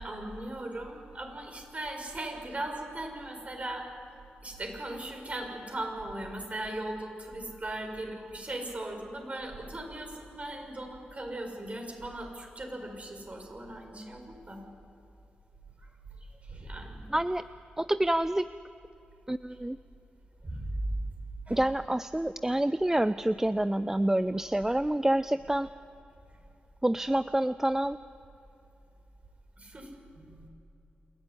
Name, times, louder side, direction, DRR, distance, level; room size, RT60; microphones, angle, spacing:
voice 1, 0.0-3.9 4.4-14.6 15.8-15.9 16.3-17.1 20.4-20.9 21.5-21.6 29.6-30.4, right 1 dB, 35° right, 3 dB, 6.3 m, -38 dB
voice 2, 17.1-17.4 17.8-18.5 19.3-19.8 21.5-25.7 26.8-28.0, right 1 dB, 10° right, 13 dB, 0.5 m, -27 dB
28.0 x 12.0 x 10.0 m, 2.8 s
supercardioid pair, 45°, 4 cm